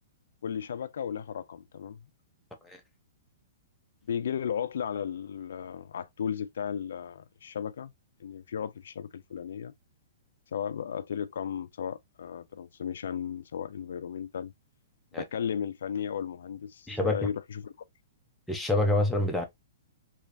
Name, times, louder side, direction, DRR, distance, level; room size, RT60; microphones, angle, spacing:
voice 1, 0.4-2.0 4.1-7.9 8.2-9.7 10.5-14.5 15.2-17.7, left 8 dB, 75° left, 0.4 m, -35 dB
voice 2, 18.5-19.4, left 1 dB, 5° left, 0.8 m, -26 dB
3.1 x 3.1 x 2.6 m
hypercardioid pair, 135°, 0 cm